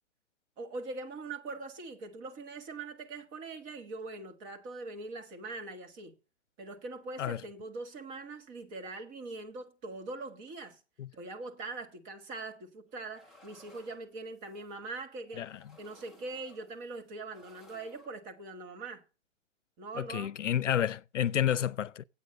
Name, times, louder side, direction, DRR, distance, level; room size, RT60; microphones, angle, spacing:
voice 1, 0.6-6.1 6.6-10.8 11.1-15.5 15.8-19.0 19.8-20.3, right 3 dB, 25° right, 1.5 m, -42 dB
sound 1, 12.9-14.8 15.2-17.0 17.3-18.2, left 2 dB, ahead, 0.5 m, -59 dB
voice 2, 19.9-22.0, left 10 dB, 85° left, 0.6 m, -30 dB
9.2 x 8.5 x 5.4 m
hypercardioid pair, 140°, 36 cm